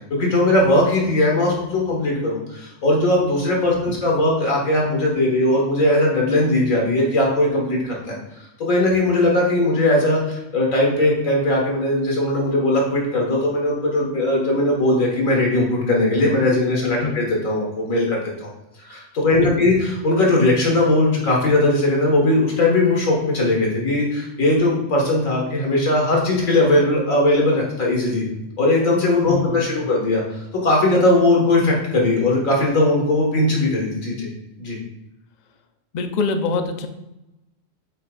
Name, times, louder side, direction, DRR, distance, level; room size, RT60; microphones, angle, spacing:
voice 1, 0.1-8.2 8.6-18.5 18.8-28.2 28.6-34.3 34.6-34.8, left 1 dB, 80° left, -2 dB, 2.1 m, -19 dB
voice 2, 19.4-19.7 29.3-29.9 35.9-36.9, left 4 dB, 50° left, 7 dB, 0.5 m, -25 dB
8.2 x 5.7 x 2.5 m, 0.94 s
omnidirectional pair, 1.4 m